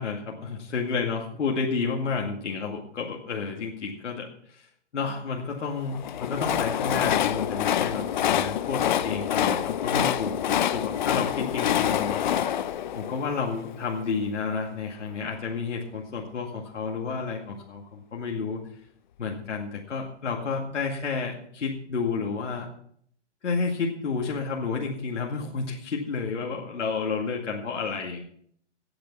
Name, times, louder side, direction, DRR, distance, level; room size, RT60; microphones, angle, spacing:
voice 1, 0.0-4.7 4.9-18.7 19.2-22.7 23.4-28.2, left 4 dB, 80° left, -1 dB, 2.2 m, -31 dB
Train, 5.9-14.0, left 10 dB, 40° left, 0.6 m, -26 dB
17.0 x 6.9 x 5.8 m, 0.65 s
hypercardioid pair, 150°, 36 cm